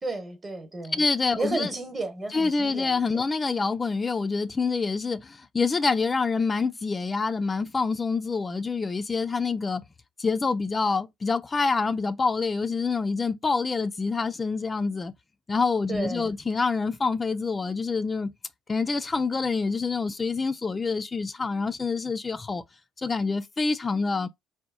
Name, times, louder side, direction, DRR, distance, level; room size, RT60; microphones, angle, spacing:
voice 1, 0.0-1.0 1.4-3.2 15.9-16.3, right 2 dB, 30° right, 0.9 m, -33 dB
voice 2, 0.9-1.7 2.3-9.8 10.2-15.1 15.5-18.3 18.7-22.6 23.0-24.3, left 4 dB, 30° left, 0.3 m, -26 dB
2.8 x 2.0 x 2.3 m
hypercardioid pair, 60°, 0 cm